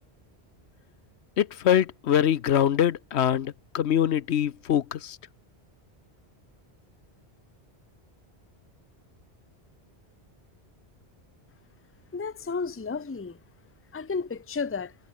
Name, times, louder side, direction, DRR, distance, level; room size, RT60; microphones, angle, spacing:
voice 1, 1.4-5.2, left 9 dB, 85° left, 1.1 m, -24 dB
voice 2, 12.1-13.4 13.9-14.9, left 4 dB, 15° left, 0.6 m, -32 dB
omnidirectional pair, 1.1 m